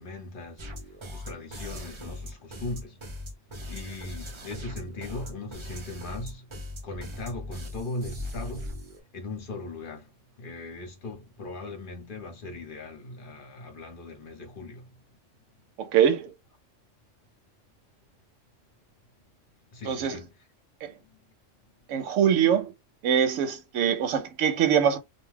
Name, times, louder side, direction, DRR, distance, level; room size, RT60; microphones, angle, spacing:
voice 1, 0.0-3.0 3.6-6.5 6.8-14.9 19.7-20.4 21.0-21.2, left 2 dB, 50° left, 1.0 m, -39 dB
sound 1, 0.6-9.0, left 1 dB, 40° right, 0.4 m, -39 dB
voice 2, 15.8-16.3 19.9-20.2 20.8-20.9 21.9-22.7 23.0-25.0, right 8 dB, 80° right, 0.9 m, -23 dB
2.4 x 2.3 x 3.2 m
omnidirectional pair, 1.3 m